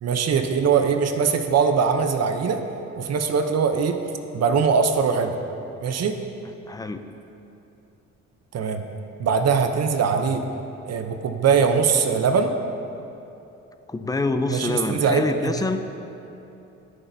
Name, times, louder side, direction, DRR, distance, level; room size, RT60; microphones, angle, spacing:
voice 1, 0.0-2.6 2.9-4.0 4.3-5.3 5.8-6.1 8.5-8.8 9.2-10.4 10.9-12.5 14.5-15.5, right 6 dB, 55° right, 6 dB, 0.7 m, -21 dB
voice 2, 6.7-7.0 13.9-15.8, left 2 dB, 10° left, 8 dB, 0.5 m, -26 dB
17.5 x 6.1 x 2.7 m, 2.9 s
cardioid pair, 90°, 30 cm